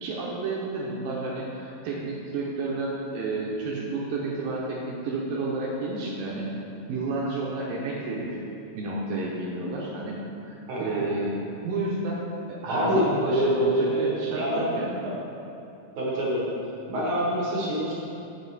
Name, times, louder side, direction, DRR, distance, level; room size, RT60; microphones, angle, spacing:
voice 1, 0.0-6.5 6.9-8.4 8.7-10.1 10.5-15.0, right 2 dB, 75° right, -4 dB, 2.2 m, -31 dB
voice 2, 12.7-14.7 15.0-15.1 16.0-16.5 16.9-17.9, equal, 60° right, -6 dB, 1.9 m, -25 dB
7.2 x 7.0 x 4.1 m, 2.8 s
omnidirectional pair, 4.7 m